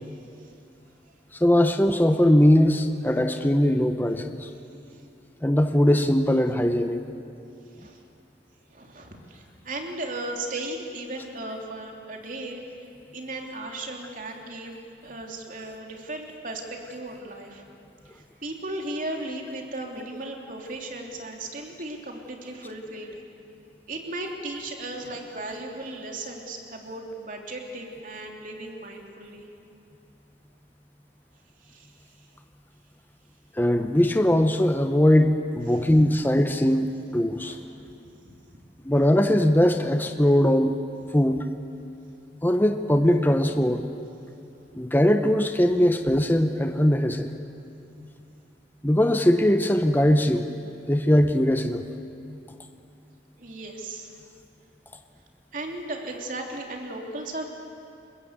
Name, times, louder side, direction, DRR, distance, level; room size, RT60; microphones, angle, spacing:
voice 1, 1.4-4.5 5.4-7.0 33.6-37.6 38.9-40.7 41.1-41.4 42.4-43.9 44.7-47.4 48.8-50.5 50.9-51.8, left 1 dB, 10° left, 7 dB, 0.8 m, -20 dB
voice 2, 8.7-12.6 13.1-17.6 18.0-23.2 23.9-29.5 31.6-31.9 35.6-35.9 37.4-37.6 53.4-54.1 55.5-57.5, right 2 dB, 50° right, 1 dB, 3.1 m, -36 dB
29.0 x 21.5 x 8.2 m, 2.6 s
head